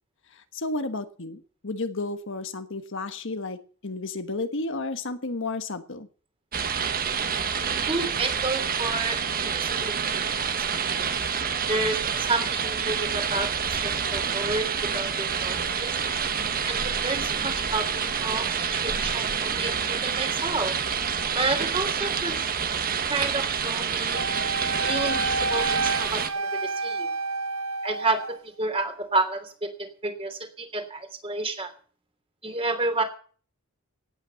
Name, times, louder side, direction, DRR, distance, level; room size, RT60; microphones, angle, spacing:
voice 1, 0.3-6.1, left 2 dB, 55° left, 9 dB, 1.4 m, -32 dB
sound 1, 6.5-26.3, right 6 dB, 40° right, 1.4 m, -28 dB
voice 2, 7.6-10.0 10.3-10.6 11.7-14.7 14.9-16.0 16.6-20.8 21.3-22.5 23.1-24.2 24.8-27.1 27.8-31.7 32.4-33.0, right 3 dB, 25° right, 6 dB, 3.1 m, -30 dB
Wind instrument woodwind instrument, 24.1-28.4, right 3 dB, 65° right, 0.9 m, -29 dB
17.0 x 9.3 x 7.0 m, 0.42 s
head